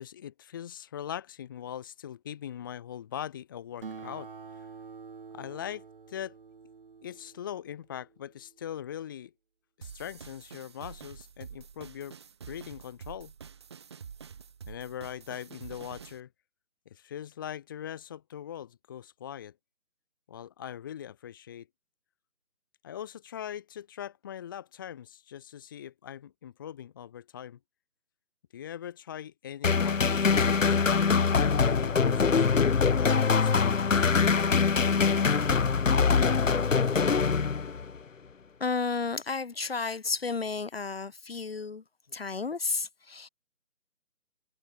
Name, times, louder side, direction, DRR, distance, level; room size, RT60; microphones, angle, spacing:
voice 1, 0.0-4.3 5.3-6.3 7.0-9.3 9.8-12.2 12.5-13.3 14.7-16.3 16.9-19.5 20.3-21.7 22.8-27.6 28.5-30.8 31.3-34.1, left 10 dB, 15° left, 1.7 m, -41 dB
Acoustic guitar, 3.8-8.7, right 5 dB, 40° right, 1.7 m, -47 dB
sound 1, 9.8-16.2, right 7 dB, 20° right, 1.5 m, -47 dB
sound 2, 29.6-38.0, left 5 dB, 65° left, 1.1 m, -23 dB
voice 2, 38.6-41.8 42.1-43.3, left 4 dB, 45° left, 1.6 m, -32 dB
figure-of-eight pair, 160°, 41 cm